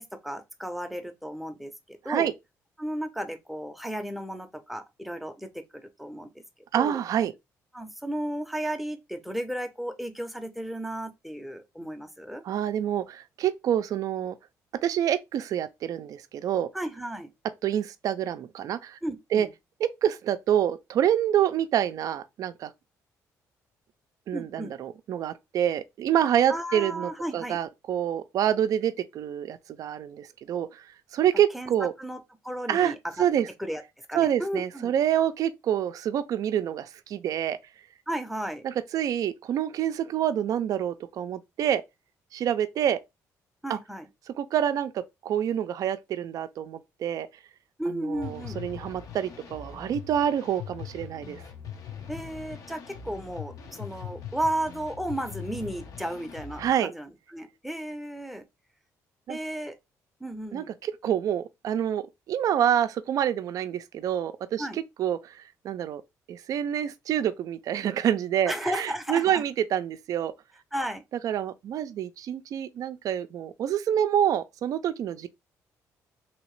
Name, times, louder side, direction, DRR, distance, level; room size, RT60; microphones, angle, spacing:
voice 1, 0.0-2.3 2.8-6.3 6.7-7.0 7.7-12.4 16.7-17.3 19.0-19.5 24.3-24.7 26.5-27.6 31.5-31.7 32.0-33.2 33.6-33.8 34.1-34.9 38.1-38.6 43.6-44.1 47.8-48.6 52.1-58.4 59.3-59.8 60.2-60.7 64.6-64.8 68.5-69.4 70.7-71.0, right 1 dB, ahead, 0.6 m, -34 dB
voice 2, 6.7-7.3 12.4-14.3 14.8-16.7 17.6-19.0 19.3-19.5 19.8-22.7 24.3-30.8 31.1-31.9 32.7-32.9 33.2-33.5 34.1-37.6 38.6-41.8 42.3-43.0 43.7-43.8 44.4-47.3 47.9-51.4 56.6-56.9 59.3-59.4 60.5-64.7 65.0-65.3 65.6-66.0 66.3-70.3 71.2-75.3, right 10 dB, 60° right, 0.4 m, -27 dB
sound 1, 48.1-56.7, left 8 dB, 65° left, 0.7 m, -41 dB
3.0 x 2.8 x 3.1 m
cardioid pair, 95°, 7 cm